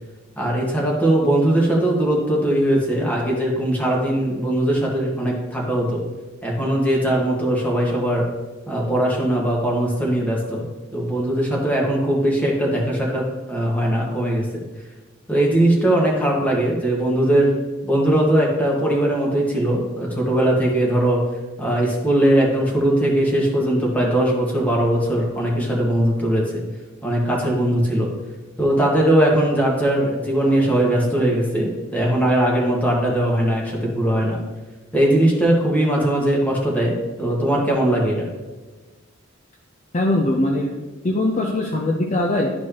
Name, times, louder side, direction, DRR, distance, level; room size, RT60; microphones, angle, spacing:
voice 1, 0.4-6.0 6.4-8.3 8.7-10.7 10.9-14.6 15.3-17.5 17.8-21.2 21.6-26.6 27.0-28.1 28.6-34.4 34.9-38.3, right 1 dB, 10° left, -3 dB, 1.5 m, -20 dB
voice 2, 39.9-42.5, left 1 dB, 35° left, 0 dB, 0.6 m, -21 dB
11.5 x 4.6 x 2.9 m, 1.2 s
head